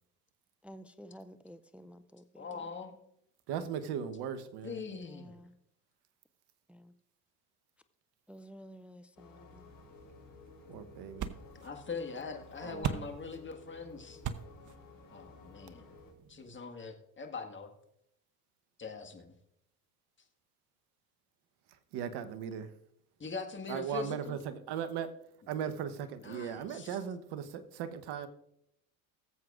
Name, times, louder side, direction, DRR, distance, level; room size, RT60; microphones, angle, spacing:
voice 1, 0.6-2.7 4.9-5.6 6.7-6.9 8.3-9.7, equal, 5° right, 11 dB, 0.3 m, -52 dB
voice 2, 2.4-3.0 4.6-5.4 11.6-14.2 15.1-15.9 16.3-17.7 18.8-19.3 23.2-24.4 26.2-27.0, left 5 dB, 25° left, 4 dB, 1.7 m, -42 dB
voice 3, 3.5-4.8 10.7-11.3 12.6-13.1 21.9-22.7 23.7-25.1 25.5-28.3, right 8 dB, 60° right, 12 dB, 1.1 m, -38 dB
sound 1, 9.2-16.1, left 4 dB, 45° left, 2.9 m, -55 dB
sound 2, 9.5-16.6, right 8 dB, 45° right, 0.8 m, -43 dB
19.5 x 7.7 x 2.5 m, 0.76 s
hypercardioid pair, 70°, 45 cm